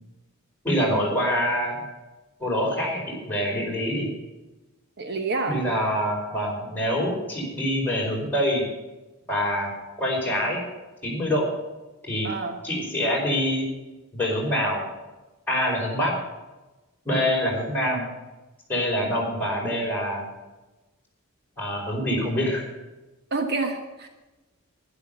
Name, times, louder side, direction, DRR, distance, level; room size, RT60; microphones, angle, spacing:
voice 1, 0.6-1.8 2.4-4.1 5.5-8.6 9.3-9.7 10.0-10.6 11.0-11.5 12.1-12.3 12.6-13.7 14.1-14.8 15.5-16.1 17.0-18.1 18.7-20.2 21.6-22.7, equal, 10° left, -4 dB, 4.8 m, -25 dB
voice 2, 5.0-5.6 12.2-12.6 23.3-24.1, right 3 dB, 50° right, 5 dB, 1.2 m, -28 dB
12.0 x 11.0 x 6.9 m, 1.1 s
head